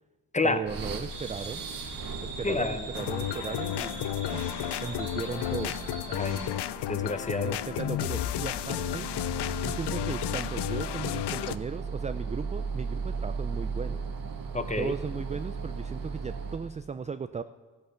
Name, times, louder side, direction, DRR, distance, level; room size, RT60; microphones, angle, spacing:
voice 1, 0.4-1.6 2.2-3.9 4.3-4.5 4.8-5.7 7.4-9.1 9.6-14.0 14.8-17.4, right 5 dB, 20° right, 10 dB, 0.3 m, -36 dB
sound 1, 0.7-16.8, right 4 dB, 50° right, 1.4 m, -37 dB
sound 2, 1.1-6.5, right 3 dB, 85° right, 2.5 m, -42 dB
voice 2, 2.4-2.9 6.1-6.6 6.9-7.6 14.5-14.9, left 3 dB, 15° left, 10 dB, 0.9 m, -29 dB
sound 3, 2.9-11.6, left 13 dB, 70° left, 0.6 m, -32 dB
14.0 x 8.0 x 5.7 m, 1.3 s
cardioid pair, 75°, 43 cm